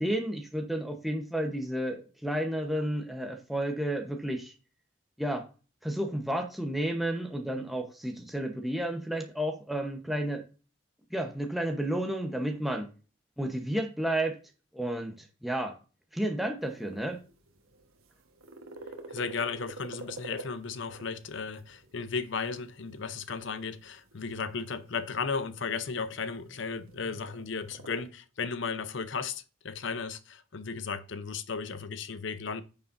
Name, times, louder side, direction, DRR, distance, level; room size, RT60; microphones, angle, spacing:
voice 1, 0.0-4.5 5.2-5.4 5.8-10.4 11.1-12.9 13.4-14.4 14.7-15.7 16.1-17.2, right 1 dB, ahead, 0.9 m, -31 dB
sound 1, 16.6-28.1, right 3 dB, 75° right, 1.3 m, -49 dB
voice 2, 19.1-32.6, left 5 dB, 60° left, 0.7 m, -35 dB
9.2 x 7.1 x 2.6 m
head